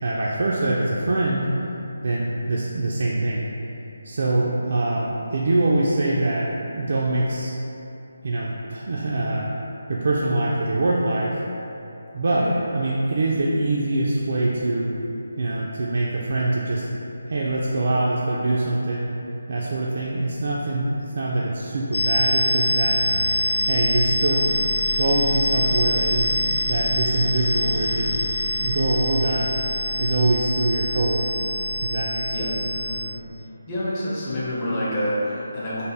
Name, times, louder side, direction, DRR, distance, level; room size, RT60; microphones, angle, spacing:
voice 1, 0.0-1.5 2.0-3.5 4.0-7.5 8.2-9.5 9.9-11.4 12.1-12.5 12.7-14.9 15.4-16.9 17.3-19.1 19.5-23.0 23.7-24.5 24.9-26.4 26.7-28.2 28.5-29.5 30.0-31.5 31.8-32.5, right 2 dB, 50° right, -5 dB, 0.3 m, -24 dB
voice 2, 12.2-12.6 32.3-32.5 32.7-33.0 33.7-35.9, equal, 20° left, -9 dB, 0.6 m, -27 dB
sound 1, 21.9-33.0, equal, 80° left, 0.5 m, -24 dB
3.3 x 2.1 x 4.0 m, 2.9 s
figure-of-eight pair, 170°, 0 cm